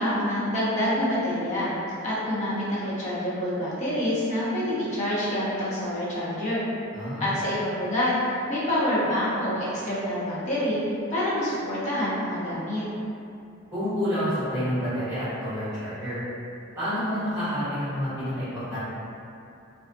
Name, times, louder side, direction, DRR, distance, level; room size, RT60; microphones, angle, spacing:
voice 1, 0.0-1.7 2.0-6.6 7.2-10.8 11.1-12.8, left 1 dB, 35° left, -9 dB, 0.6 m, -27 dB
voice 2, 6.9-7.4 13.7-16.2 16.7-18.8, equal, 10° right, -13 dB, 1.1 m, -29 dB
2.4 x 2.3 x 2.5 m, 2.6 s
head